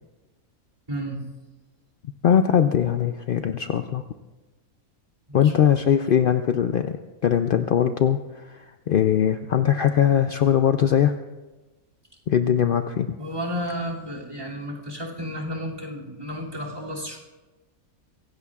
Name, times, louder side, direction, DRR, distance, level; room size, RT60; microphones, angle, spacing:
voice 1, 0.9-1.2 5.3-5.7 13.2-17.2, equal, 20° right, 1 dB, 2.7 m, -32 dB
voice 2, 2.2-4.0 5.3-7.0 7.2-11.1 12.3-13.1, left 9 dB, 75° left, 8 dB, 0.5 m, -21 dB
24.0 x 16.5 x 2.4 m, 1.2 s
omnidirectional pair, 1.5 m